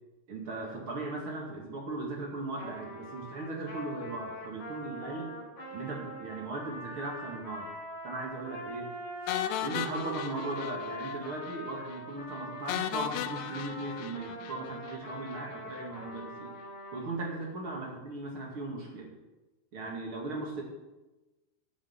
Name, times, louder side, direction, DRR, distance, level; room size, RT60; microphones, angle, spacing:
voice 1, 0.3-5.3 5.7-7.7 8.0-8.9 9.6-16.5 16.9-19.1 19.7-20.6, right 2 dB, 45° right, -2 dB, 1.8 m, -38 dB
Trumpet, 2.6-12.8 13.3-17.1, equal, 30° left, 4.0 m, -43 dB
sound 1, 9.3-11.2 11.4-11.6 11.9-12.0 12.7-15.0, left 11 dB, 85° left, 2.4 m, -36 dB
11.0 x 8.3 x 8.0 m, 1.1 s
omnidirectional pair, 5.7 m